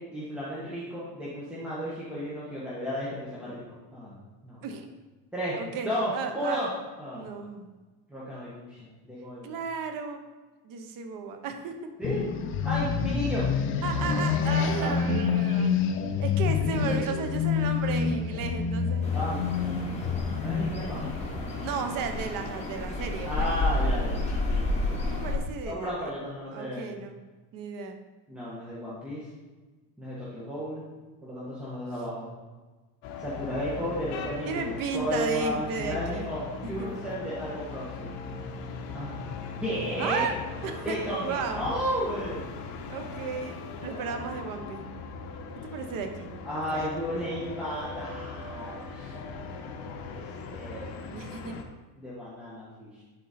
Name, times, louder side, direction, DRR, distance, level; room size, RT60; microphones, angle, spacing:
voice 1, 0.0-3.6 3.9-4.6 5.3-5.6 5.8-6.7 7.0-7.3 8.1-9.6 12.0-12.2 12.6-13.5 14.8-15.0 19.1-19.5 20.4-21.1 23.2-24.2 25.7-26.9 28.3-29.2 30.0-30.8 31.2-32.3 33.2-34.6 34.9-38.1 38.9-40.3 40.8-42.4 43.8-44.4 46.4-49.1 49.9-51.0 52.0-52.9, equal, ahead, -9 dB, 1.4 m, -33 dB
voice 2, 5.6-6.6 7.1-7.7 9.4-10.2 10.6-11.7 13.8-15.8 16.2-19.1 21.6-23.5 25.2-26.1 26.5-27.1 27.5-28.0 34.4-36.3 36.6-36.9 40.0-40.3 40.6-41.6 42.9-44.9 45.7-46.3 46.7-46.9 51.1-51.6, right 5 dB, 45° right, 6 dB, 1.0 m, -34 dB
sound 1, 12.0-22.8, left 6 dB, 30° left, 0.4 m, -28 dB
sound 2, 19.0-25.4, left 2 dB, 15° left, 1.5 m, -31 dB
sound 3, 33.0-51.6, left 4 dB, 65° left, 1.2 m, -39 dB
11.0 x 4.5 x 4.2 m, 1.3 s
cardioid pair, 165°, 45 cm